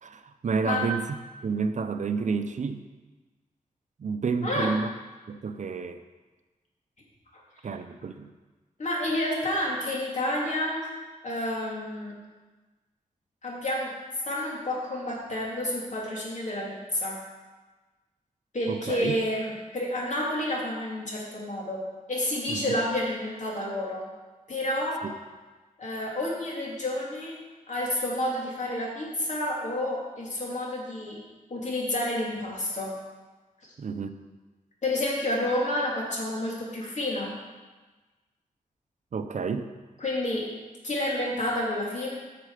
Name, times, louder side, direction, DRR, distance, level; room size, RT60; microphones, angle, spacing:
voice 1, 0.0-1.1 1.4-2.8 4.0-4.9 5.3-6.0 7.6-8.3 18.7-19.2 22.5-22.7 25.0-25.1 33.8-34.2 39.1-39.7, right 5 dB, 60° right, 9 dB, 0.6 m, -30 dB
voice 2, 8.8-10.9 11.2-12.1 13.4-13.9 14.3-17.2 18.5-21.8 22.1-24.1 24.5-25.0 25.8-27.4 27.7-31.2 31.5-32.9 34.8-37.3 40.0-40.5 40.8-42.1, left 1 dB, 60° left, -3 dB, 2.9 m, -29 dB
11.5 x 6.7 x 5.0 m, 1.3 s
wide cardioid pair, 100°, 14 cm